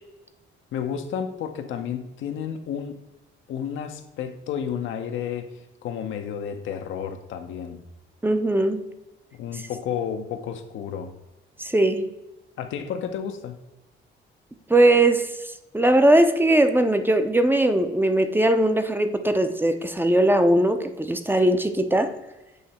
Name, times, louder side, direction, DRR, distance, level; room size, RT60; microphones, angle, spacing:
voice 1, 0.7-3.0 3.5-5.5 5.8-7.8 9.4-11.1 12.6-13.6, left 8 dB, 80° left, 6 dB, 0.7 m, -31 dB
voice 2, 8.2-8.8 11.6-12.1 14.7-15.3 15.7-22.1, right 1 dB, 10° right, 8 dB, 0.5 m, -20 dB
8.0 x 2.8 x 4.2 m, 1.0 s
cardioid pair, 90°, 20 cm